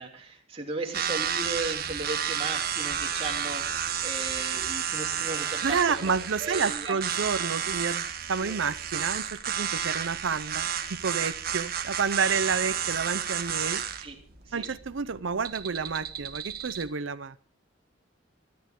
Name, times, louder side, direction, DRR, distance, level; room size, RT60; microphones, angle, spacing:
voice 1, 0.0-7.0 8.4-8.6 14.0-14.2 14.4-14.7, right 3 dB, 30° right, 3.2 m, -36 dB
sound 1, 0.9-16.8, right 8 dB, 50° right, 1.4 m, -31 dB
voice 2, 5.6-13.8 14.5-17.4, right 5 dB, 85° right, 0.6 m, -30 dB
27.5 x 10.5 x 3.7 m
head